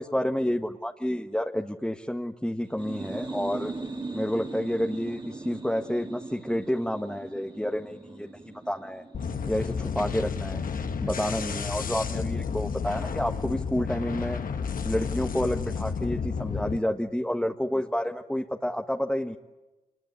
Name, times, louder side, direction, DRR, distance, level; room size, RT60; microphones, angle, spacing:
voice 1, 0.0-3.7 4.1-9.0 9.5-10.6 11.0-14.4 14.8-19.4, equal, 5° left, 2 dB, 1.6 m, -29 dB
sound 1, 2.6-10.2, right 3 dB, 30° right, 2.7 m, -39 dB
sound 2, 9.1-16.8, left 6 dB, 60° left, 1.5 m, -31 dB
26.5 x 21.0 x 9.7 m, 1.1 s
supercardioid pair, 40°, 16 cm